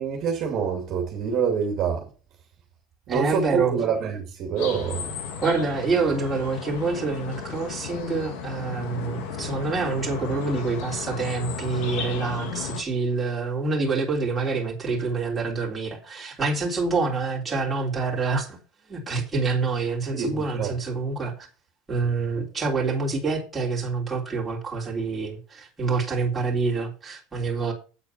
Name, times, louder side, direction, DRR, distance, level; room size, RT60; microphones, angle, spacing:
voice 1, 0.0-2.0 3.1-5.1 20.1-20.7, right 6 dB, 35° right, 2.4 m, -26 dB
voice 2, 3.1-3.7 5.4-18.6 18.9-21.5 21.9-27.7, right 4 dB, 10° right, 3.5 m, -27 dB
sound 1, 4.6-12.8, left 7 dB, 60° left, 2.3 m, -35 dB
8.6 x 8.3 x 5.8 m
cardioid pair, 165°, 0 cm